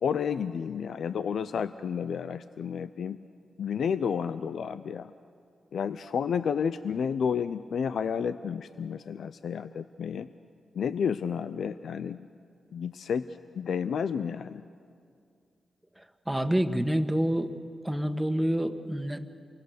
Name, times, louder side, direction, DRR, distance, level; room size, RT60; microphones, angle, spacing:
voice 1, 0.0-3.2 3.6-5.1 5.7-10.3 10.7-12.3 12.7-13.3 13.6-14.6, left 7 dB, 75° left, 13 dB, 0.5 m, -31 dB
voice 2, 16.0-17.5 17.8-19.3, equal, 10° right, 8 dB, 1.7 m, -28 dB
29.0 x 23.5 x 6.7 m, 2.3 s
supercardioid pair, 45°, 0 cm